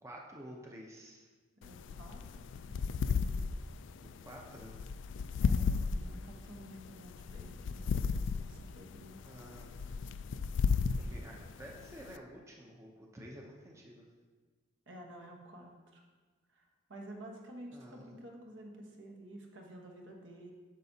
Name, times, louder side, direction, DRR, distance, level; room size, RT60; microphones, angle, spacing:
voice 1, 0.0-1.3 4.2-4.8 9.2-10.0 11.0-14.1 17.7-18.1, equal, 15° right, -1 dB, 0.7 m, -50 dB
sound 1, 1.6-12.2, left 5 dB, 65° left, 0.3 m, -35 dB
voice 2, 1.6-3.2 5.4-9.2 14.9-16.0 16.5-20.5, equal, 70° right, 1 dB, 1.2 m, -51 dB
9.1 x 6.7 x 2.8 m, 1.4 s
head